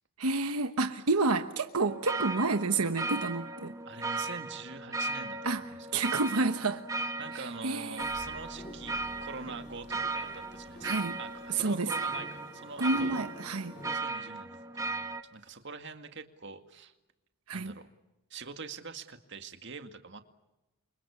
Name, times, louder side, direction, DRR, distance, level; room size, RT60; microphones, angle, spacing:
voice 1, 0.2-3.7 5.4-5.6 5.9-6.8 7.3-8.1 10.8-11.2 11.6-11.9 12.8-13.8 17.5-17.7, right 3 dB, 85° right, 1.2 m, -29 dB
sound 1, 1.8-15.2, right 3 dB, 15° right, 1.3 m, -37 dB
voice 2, 3.8-6.2 7.2-8.9 9.2-10.9 11.2-13.2 13.9-16.9 17.5-17.9 18.3-20.2, right 4 dB, 55° right, 2.1 m, -44 dB
sound 2, 8.0-14.0, equal, 35° left, 2.7 m, -49 dB
29.5 x 25.5 x 7.2 m
head